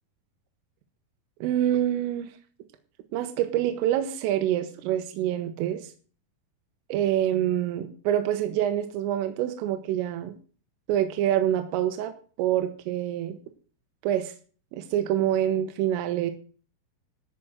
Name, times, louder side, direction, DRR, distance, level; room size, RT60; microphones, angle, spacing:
voice 1, 1.4-2.3 3.1-5.9 6.9-10.3 10.9-12.1 12.4-13.4 14.0-14.3 14.7-16.3, right 11 dB, 80° right, 7 dB, 3.7 m, -26 dB
13.5 x 5.1 x 7.8 m, 0.40 s
omnidirectional pair, 6.0 m